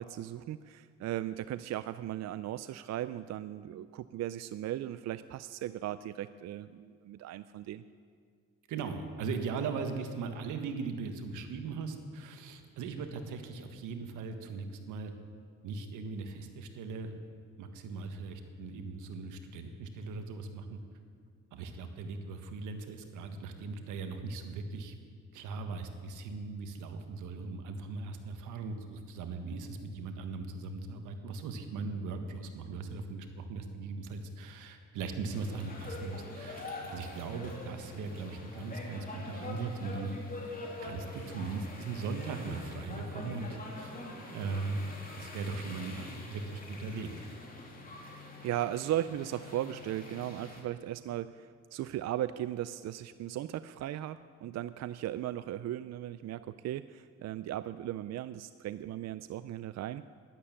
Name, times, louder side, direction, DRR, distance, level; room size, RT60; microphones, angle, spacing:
voice 1, 0.0-7.8 48.4-60.0, right 12 dB, 60° right, 14 dB, 0.5 m, -37 dB
voice 2, 8.7-15.1 15.6-17.2 17.6-20.8 21.5-24.9 25.3-40.1 40.8-43.9 44.3-44.8 45.1-47.1, right 4 dB, 90° right, 6 dB, 1.5 m, -39 dB
sound 1, 35.3-50.6, left 2 dB, 30° left, 3.2 m, -45 dB
12.0 x 11.0 x 8.6 m, 2.1 s
cardioid pair, 90°, 30 cm